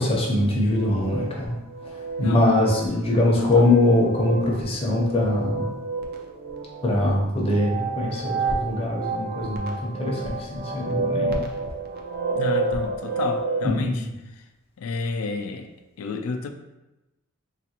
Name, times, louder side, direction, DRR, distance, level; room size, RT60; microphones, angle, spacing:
voice 1, 0.0-1.6 1.8-5.8 6.8-11.5 13.6-14.1, left 1 dB, 25° left, -2 dB, 0.6 m, -22 dB
sound 1, 0.7-13.7, right 3 dB, 45° right, 0.3 m, -30 dB
voice 2, 3.4-3.7 12.3-14.0 14.8-15.7 16.0-16.5, left 4 dB, 70° left, 6 dB, 0.3 m, -30 dB
3.3 x 2.4 x 2.8 m, 0.99 s
head